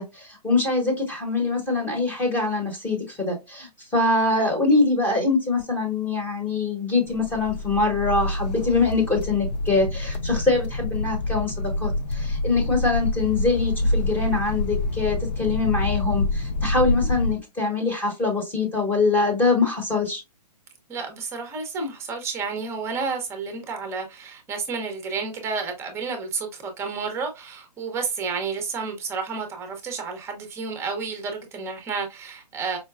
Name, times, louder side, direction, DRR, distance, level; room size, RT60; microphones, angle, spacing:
voice 1, 0.0-20.2, left 3 dB, 10° left, 1.1 m, -24 dB
sound 1, 7.1-17.3, left 2 dB, 80° left, 0.5 m, -27 dB
voice 2, 20.9-32.8, right 4 dB, 10° right, 0.8 m, -31 dB
4.9 x 2.2 x 2.3 m
hypercardioid pair, 145°, 21 cm